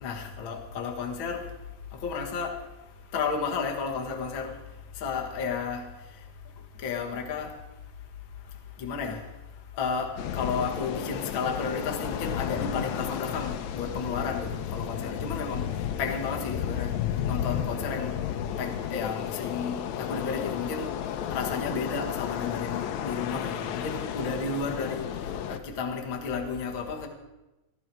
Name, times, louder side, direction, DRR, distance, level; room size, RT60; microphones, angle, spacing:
voice 1, 0.0-1.4 2.0-2.5 3.1-4.5 5.0-5.8 6.8-7.5 8.8-9.2 9.8-15.7 16.0-16.9 17.3-18.2 18.6-20.9 21.3-25.1 25.5-27.1, left 5 dB, 45° left, 1 dB, 1.9 m, -32 dB
sound 1, 10.2-25.6, left 9 dB, 70° left, 1.9 m, -33 dB
18.5 x 13.0 x 4.6 m, 1.0 s
omnidirectional pair, 3.7 m